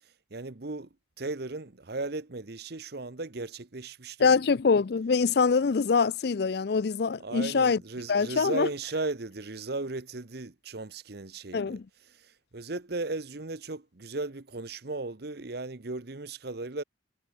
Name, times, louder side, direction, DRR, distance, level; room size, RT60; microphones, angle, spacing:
voice 1, 0.0-0.9 1.2-4.4 7.2-11.8 12.1-16.8, right 3 dB, 55° right, 1.0 m, -36 dB
voice 2, 4.2-7.8 8.1-8.7 11.5-11.8, left 5 dB, 55° left, 0.4 m, -24 dB
head